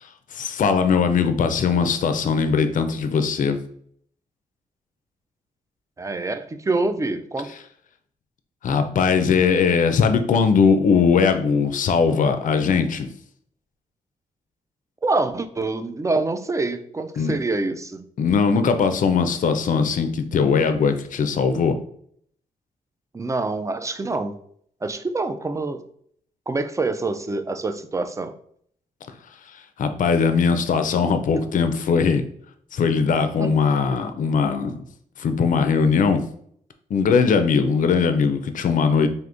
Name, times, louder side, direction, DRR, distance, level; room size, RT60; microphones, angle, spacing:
voice 1, 0.3-3.6 8.6-13.1 17.2-17.3 18.2-21.8 29.8-32.2 32.7-34.8 35.2-36.2 36.9-39.1, left 5 dB, 60° left, 9 dB, 0.4 m, -20 dB
voice 2, 6.0-7.5 15.0-18.0 23.1-24.4 24.8-25.8 26.5-28.3 33.4-33.5, right 3 dB, 20° right, 9 dB, 0.4 m, -26 dB
3.5 x 2.5 x 2.5 m, 0.64 s
supercardioid pair, 50°, 16 cm